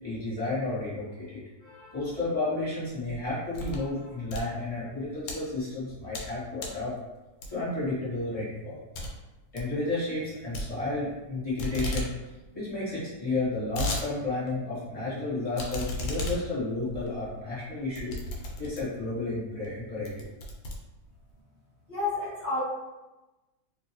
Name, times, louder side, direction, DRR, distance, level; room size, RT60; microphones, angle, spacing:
voice 1, 0.0-6.9 7.5-8.8 9.5-12.3 12.5-18.1 18.6-20.3, left 2 dB, 20° left, -9 dB, 1.5 m, -32 dB
sound 1, 2.9-3.9 4.2-5.4 5.9-6.3 6.6-6.9 7.4-7.8 8.2-8.3 8.6-8.7 8.9-9.1 9.4-9.7 10.5-11.3 11.6-12.1 12.4-12.5 12.7-12.8 13.3-14.1 14.5-14.6 15.5-19.1 19.6-19.7 20.1-21.3, left 1 dB, 85° left, 1.4 m, -35 dB
voice 2, 21.9-22.6, left 3 dB, 40° left, -13 dB, 0.8 m, -30 dB
3.2 x 2.9 x 2.9 m, 1.1 s
omnidirectional pair, 2.0 m